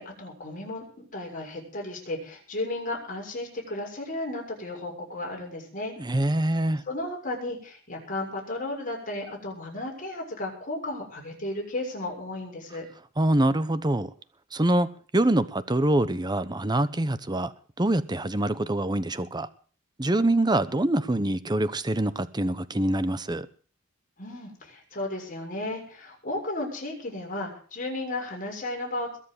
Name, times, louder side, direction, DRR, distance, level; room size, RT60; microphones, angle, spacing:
voice 1, 0.0-5.9 6.9-12.9 24.2-29.2, left 2 dB, 45° left, 6.7 m, -34 dB
voice 2, 6.0-6.8 13.2-14.1 14.5-14.9 15.1-19.5 20.0-23.5, right 1 dB, 20° right, 0.9 m, -25 dB
22.0 x 7.5 x 7.3 m
head